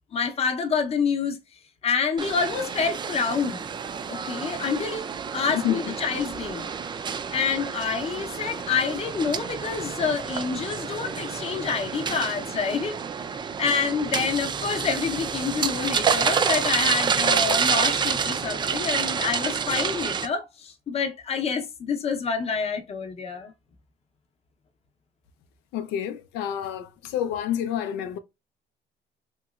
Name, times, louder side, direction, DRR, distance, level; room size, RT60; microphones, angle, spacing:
voice 1, 0.1-1.4 1.8-3.6 4.1-6.7 7.3-13.0 13.6-23.5, left 5 dB, 35° left, 0.7 m, -27 dB
sound 1, 2.2-20.3, right 6 dB, 25° right, 0.3 m, -28 dB
voice 2, 5.5-5.9 25.7-28.2, left 10 dB, 90° left, 0.4 m, -29 dB
2.9 x 2.9 x 2.3 m
cardioid pair, 110°, 17 cm